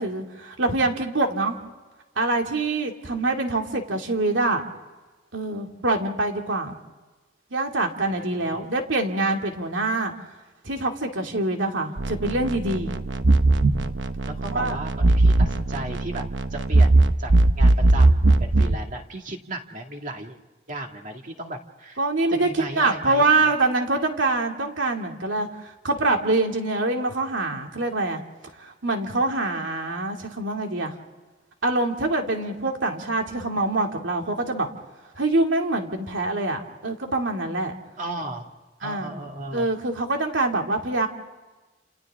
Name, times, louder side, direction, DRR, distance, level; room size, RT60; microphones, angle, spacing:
voice 1, 0.0-1.6 2.2-4.6 5.3-6.8 7.5-10.1 10.6-13.0 14.4-14.8 22.0-28.2 28.6-30.9 31.6-34.7 35.2-37.7 38.8-39.2 39.5-41.1, right 2 dB, 85° right, 2 dB, 2.6 m, -25 dB
voice 2, 8.1-8.6 14.2-16.2 16.5-17.3 17.6-20.4 20.7-22.0 22.3-23.5 38.0-38.5 38.8-39.7, right 1 dB, 45° right, 3 dB, 2.2 m, -35 dB
sound 1, 12.0-18.8, right 2 dB, 70° right, 1.0 m, -19 dB
30.0 x 28.5 x 3.7 m, 1.3 s
head